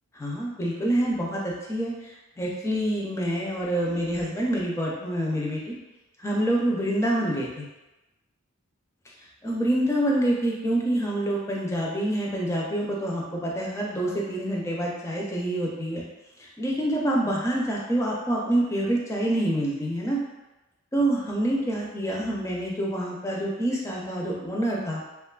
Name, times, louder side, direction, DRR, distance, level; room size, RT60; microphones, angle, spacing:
voice 1, 0.2-5.8 6.2-7.6 9.4-16.0 16.4-20.2 20.9-25.0, right 1 dB, 15° left, -3 dB, 0.4 m, -27 dB
2.9 x 2.3 x 2.2 m, 1.0 s
head